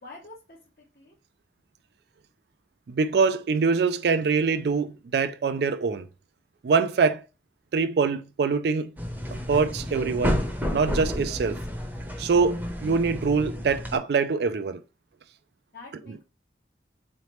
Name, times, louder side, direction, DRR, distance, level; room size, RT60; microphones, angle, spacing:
voice 1, 0.0-1.2 15.7-16.2, left 3 dB, 55° left, 0.9 m, -47 dB
voice 2, 2.9-6.1 6.6-7.2 7.7-8.9 9.5-10.4 10.7-11.6 12.2-14.8, right 5 dB, 65° right, 0.4 m, -24 dB
sound 1, 9.0-14.0, equal, 10° right, 0.7 m, -31 dB
3.9 x 3.2 x 3.0 m
head